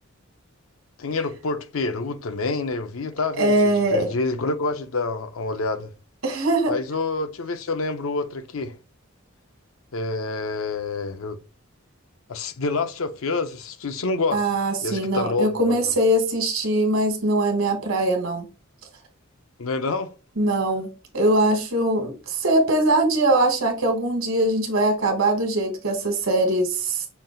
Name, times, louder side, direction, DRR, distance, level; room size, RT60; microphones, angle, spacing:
voice 1, 1.0-3.5 3.9-5.9 6.7-8.8 9.9-11.4 12.3-14.4 14.8-15.9 19.6-20.1, left 3 dB, 75° left, 0.6 m, -27 dB
voice 2, 3.4-4.1 6.2-6.7 14.3-18.5 20.4-20.9 21.1-27.1, right 1 dB, 70° right, 1.3 m, -21 dB
5.8 x 2.3 x 3.8 m
head